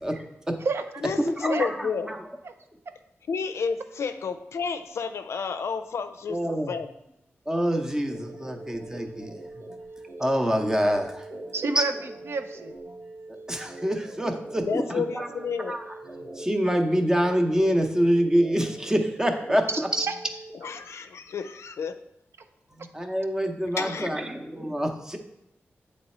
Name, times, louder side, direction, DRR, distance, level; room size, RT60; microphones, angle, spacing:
voice 1, 0.0-0.6 1.4-1.7 2.0-2.2 6.3-6.7 7.5-9.3 10.2-11.2 11.8-11.9 13.5-15.3 15.7-15.8 16.4-20.0 22.9-25.2, equal, 10° right, 4 dB, 0.7 m, -26 dB
voice 2, 1.0-2.1 3.3-6.9 14.5-15.8 20.5-22.0 23.8-24.3, left 5 dB, 85° left, 8 dB, 0.4 m, -31 dB
sound 1, 8.1-20.5, right 2 dB, 85° right, 0.9 m, -43 dB
voice 3, 11.5-12.7 19.7-20.1, right 4 dB, 65° right, 8 dB, 0.5 m, -29 dB
7.8 x 3.2 x 4.2 m, 0.84 s
wide cardioid pair, 110°, 5 cm